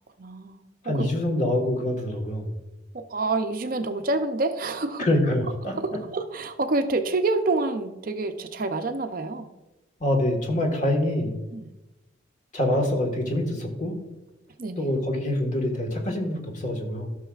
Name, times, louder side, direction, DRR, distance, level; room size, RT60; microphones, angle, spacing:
voice 1, 0.2-0.6 0.8-1.1 2.9-5.1 5.6-9.5 11.5-11.7 14.6-14.9, right 3 dB, 45° right, 7 dB, 0.5 m, -27 dB
voice 2, 0.8-2.5 5.0-5.7 10.0-11.4 12.5-14.0 14.8-17.1, left 1 dB, 40° left, 2 dB, 1.5 m, -25 dB
14.0 x 6.3 x 2.4 m, 1.0 s
head